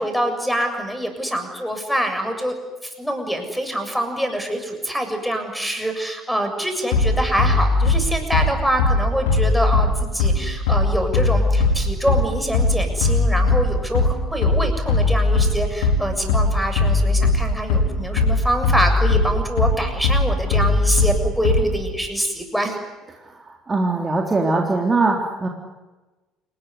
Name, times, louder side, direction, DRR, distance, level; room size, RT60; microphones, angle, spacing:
voice 1, 0.0-2.5 2.8-22.8, right 1 dB, ahead, 4 dB, 7.1 m, -25 dB
Bass drum, 6.9-21.9, left 3 dB, 65° left, 4.8 m, -19 dB
voice 2, 23.2-25.5, right 3 dB, 25° right, 1 dB, 3.6 m, -21 dB
28.5 x 20.0 x 9.9 m, 1.1 s
figure-of-eight pair, 60°, 0 cm